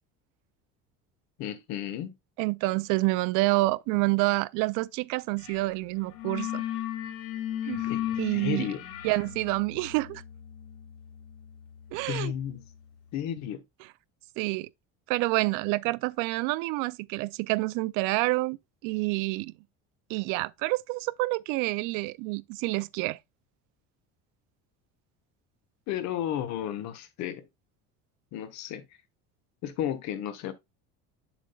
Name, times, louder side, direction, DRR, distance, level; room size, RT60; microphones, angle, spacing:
voice 1, 1.4-2.1 7.8-8.8 12.0-12.6 13.1-13.6 25.9-27.5 28.3-28.8 29.6-30.5, left 10 dB, 55° left, 1.3 m, -33 dB
voice 2, 2.4-6.6 7.6-7.9 8.2-8.7 9.0-10.2 11.9-12.3 14.4-14.7 15.1-18.6 18.8-19.5 20.1-23.2, right 22 dB, 65° right, 0.5 m, -28 dB
sound 1, 5.4-5.7 5.9-12.6, left 11 dB, 80° left, 2.2 m, -36 dB
7.5 x 7.3 x 2.3 m
cardioid pair, 165°, 33 cm